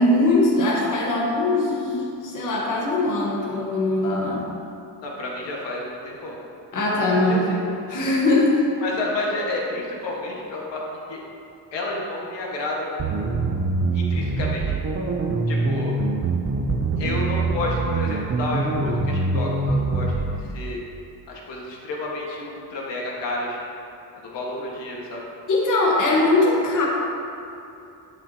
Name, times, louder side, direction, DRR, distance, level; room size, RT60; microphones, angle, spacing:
voice 1, 0.0-4.5 6.7-8.7 25.5-26.8, left 2 dB, 45° left, -4 dB, 1.4 m, -21 dB
voice 2, 5.0-6.4 7.3-7.4 8.8-10.8 11.1-11.2 11.7-13.3 13.9-14.6 15.5-15.9 17.0-20.1 20.4-20.8 21.3-23.6 24.1-25.2, left 2 dB, 85° left, -3 dB, 1.7 m, -30 dB
sound 1, 13.0-20.4, right 3 dB, 30° right, 0.6 m, -24 dB
10.5 x 8.8 x 2.9 m, 2.7 s
cardioid pair, 170°, 42 cm